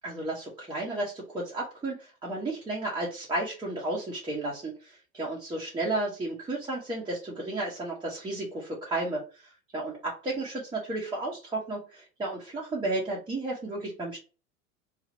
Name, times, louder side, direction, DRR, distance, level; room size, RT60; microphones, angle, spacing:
voice 1, 0.0-14.2, right 2 dB, 10° right, -5 dB, 1.0 m, -33 dB
2.9 x 2.5 x 3.9 m, 0.34 s
figure-of-eight pair, 80°, 42 cm